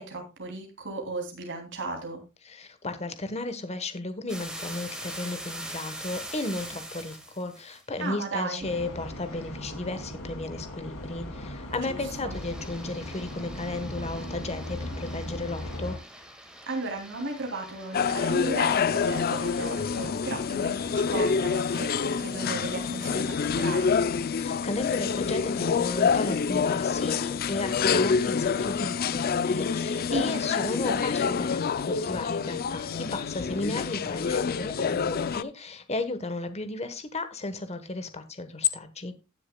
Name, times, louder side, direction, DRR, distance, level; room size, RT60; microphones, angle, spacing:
voice 1, 0.0-2.2 8.0-8.7 11.7-12.3 16.7-24.0 30.1-31.0, right 2 dB, 60° right, 2 dB, 2.8 m, -35 dB
voice 2, 2.5-16.0 24.3-39.1, left 2 dB, 30° left, 10 dB, 1.2 m, -34 dB
sound 1, 4.3-7.8 12.3-20.2 20.5-23.1, right 1 dB, 5° right, 1.8 m, -44 dB
sound 2, 8.6-16.0, left 1 dB, 85° left, 5.1 m, -38 dB
sound 3, 17.9-35.4, left 6 dB, 45° left, 0.4 m, -27 dB
18.5 x 6.6 x 2.2 m, 0.27 s
head